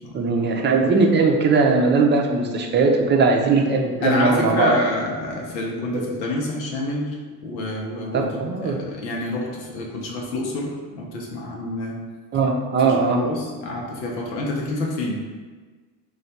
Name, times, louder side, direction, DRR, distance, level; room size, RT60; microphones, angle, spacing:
voice 1, 0.1-4.7 5.9-6.1 8.1-8.8 12.3-13.2, right 4 dB, 20° right, 2 dB, 0.5 m, -19 dB
voice 2, 4.0-7.2 7.4-12.0 12.8-15.3, left 1 dB, 90° left, -2 dB, 0.9 m, -27 dB
3.2 x 2.4 x 4.1 m, 1.4 s
hypercardioid pair, 70°, 50 cm